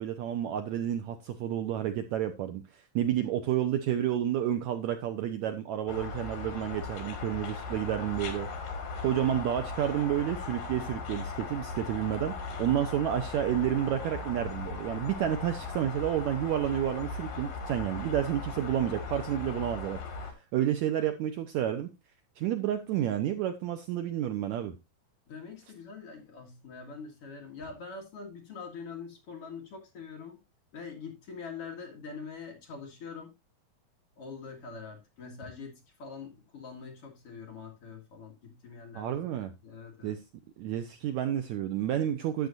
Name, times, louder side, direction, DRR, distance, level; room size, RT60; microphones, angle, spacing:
voice 1, 0.0-8.5 9.0-20.0 20.5-21.9 22.4-24.7 38.9-39.5 40.0-40.2 40.6-42.5, right 11 dB, 80° right, 1.7 m, -30 dB
sound 1, 5.9-20.3, left 4 dB, 80° left, 3.8 m, -38 dB
voice 2, 25.3-30.4 30.7-33.3 34.2-40.2, left 5 dB, 45° left, 2.4 m, -44 dB
12.0 x 8.4 x 2.5 m
omnidirectional pair, 3.9 m